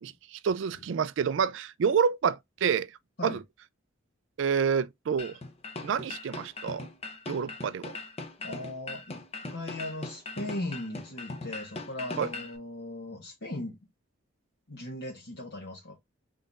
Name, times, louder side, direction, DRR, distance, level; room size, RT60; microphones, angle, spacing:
voice 1, 0.0-2.9 3.2-3.4 4.4-5.4 5.8-6.9 7.3-7.9 12.2-12.3, right 6 dB, 65° right, 0.3 m, -28 dB
sound 1, 5.2-12.6, left 3 dB, 30° left, 0.7 m, -40 dB
voice 2, 8.4-9.2 9.5-13.9 14.7-16.0, left 1 dB, 60° left, 1.2 m, -38 dB
3.9 x 3.7 x 2.4 m
head